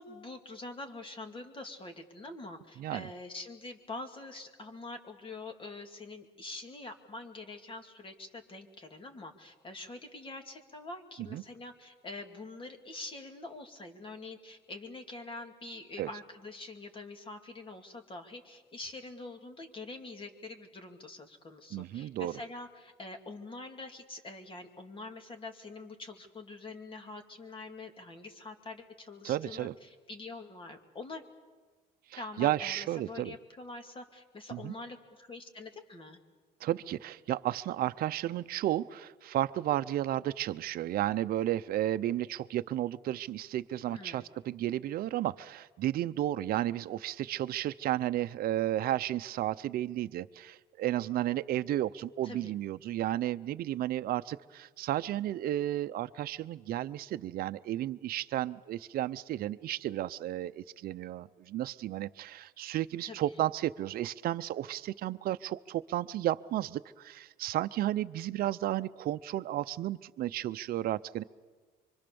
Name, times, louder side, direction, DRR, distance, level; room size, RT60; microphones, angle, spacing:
voice 1, 0.0-31.2 32.1-36.2 43.9-44.3 52.2-52.5 63.0-63.4, left 2 dB, 30° left, 5 dB, 2.6 m, -45 dB
voice 2, 2.8-3.1 11.3-11.4 16.0-16.1 21.7-22.3 29.2-29.7 32.1-33.4 34.5-34.7 36.6-71.2, right 13 dB, 60° right, 11 dB, 0.6 m, -33 dB
25.5 x 24.5 x 7.0 m, 1.4 s
cardioid pair, 110°, 17 cm